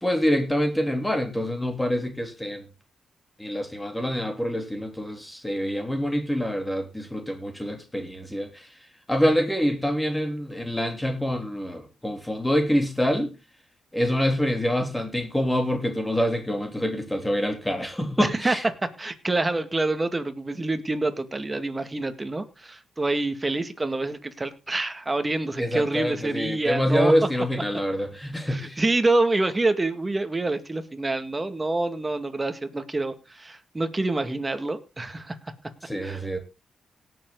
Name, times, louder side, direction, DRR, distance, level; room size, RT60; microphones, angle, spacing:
voice 1, 0.0-2.7 3.4-8.7 9.1-13.3 13.9-18.6 25.6-28.8 35.9-36.4, equal, 10° left, 3.5 m, -26 dB
voice 2, 18.2-18.5 18.8-27.3 28.5-35.5 36.0-36.2, right 2 dB, 25° right, 2.0 m, -27 dB
18.0 x 7.3 x 3.9 m
cardioid pair, 70°, 0 cm